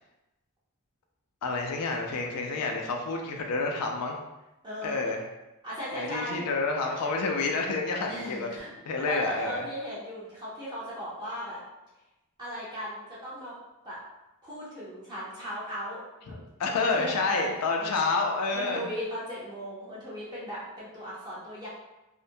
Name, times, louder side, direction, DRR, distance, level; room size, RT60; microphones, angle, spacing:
voice 1, 1.4-4.2 4.8-5.2 5.9-8.5 8.9-9.6 16.3-18.9, left 3 dB, 90° left, 2 dB, 0.4 m, -29 dB
voice 2, 4.6-5.0 5.6-6.5 8.1-8.7 9.1-11.6 12.4-13.5 13.8-14.0 14.4-16.4 16.7-17.5 17.8-18.0 18.5-21.7, equal, 20° right, -9 dB, 0.7 m, -37 dB
2.5 x 2.1 x 2.6 m, 0.98 s
head